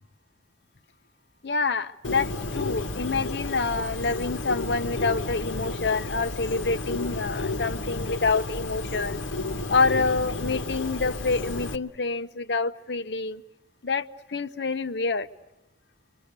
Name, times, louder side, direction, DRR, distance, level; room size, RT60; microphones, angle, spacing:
voice 1, 1.4-2.3 2.5-9.2 9.7-13.4 13.8-15.3, left 4 dB, 60° left, 0.8 m, -27 dB
Bird, 2.0-11.8, left 2 dB, 75° left, 1.2 m, -32 dB
28.0 x 24.5 x 6.7 m
head